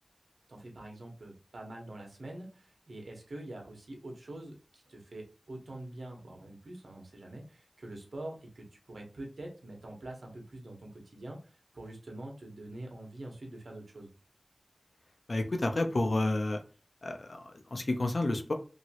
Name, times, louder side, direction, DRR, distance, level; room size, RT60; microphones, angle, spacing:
voice 1, 0.5-14.1, right 1 dB, 90° right, 1 dB, 1.0 m, -45 dB
voice 2, 15.3-16.6 17.0-17.4 17.7-18.5, left 2 dB, 60° left, 5 dB, 0.6 m, -30 dB
3.0 x 2.8 x 2.9 m, 0.34 s
wide cardioid pair, 75°, 0 cm